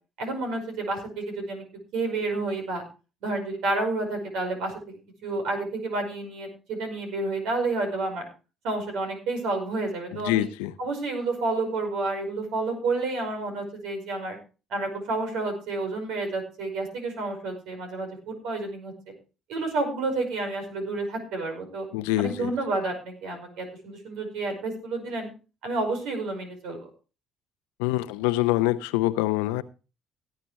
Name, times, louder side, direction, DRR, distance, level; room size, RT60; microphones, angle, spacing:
voice 1, 0.2-1.6 1.9-2.8 3.2-8.3 8.6-10.5 10.8-14.4 14.7-18.9 19.5-21.9 22.2-25.3 25.6-26.9, right 3 dB, 75° right, 5.3 m, -30 dB
voice 2, 10.1-10.7 21.9-22.5 27.8-29.6, left 16 dB, 85° left, 0.7 m, -25 dB
18.0 x 9.2 x 3.2 m
hypercardioid pair, 60°, 0 cm